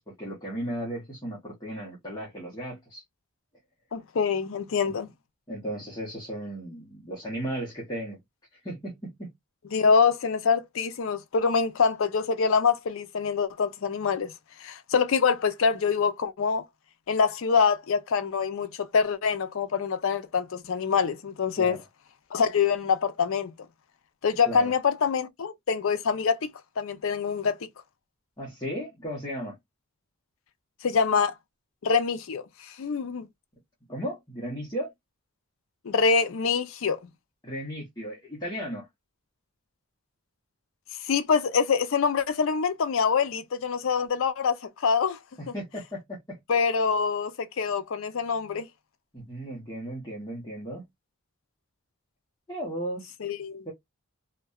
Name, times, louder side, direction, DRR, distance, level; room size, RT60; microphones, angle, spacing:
voice 1, 0.1-3.0 4.8-4.9 5.5-8.2 8.5-9.3 21.6-21.8 24.5-24.7 28.4-29.6 33.9-34.9 37.4-38.9 45.4-46.4 49.1-50.8 52.5-53.1 53.6-53.7, right 1 dB, 15° left, 0.8 m, -35 dB
voice 2, 3.9-5.1 9.7-14.3 14.6-16.6 17.1-21.8 22.3-23.5 24.2-26.5 26.8-27.5 30.8-31.3 31.8-33.3 35.8-37.0 41.0-45.2 46.5-48.7 53.2-53.6, left 5 dB, 65° left, 0.4 m, -25 dB
2.6 x 2.2 x 2.2 m
head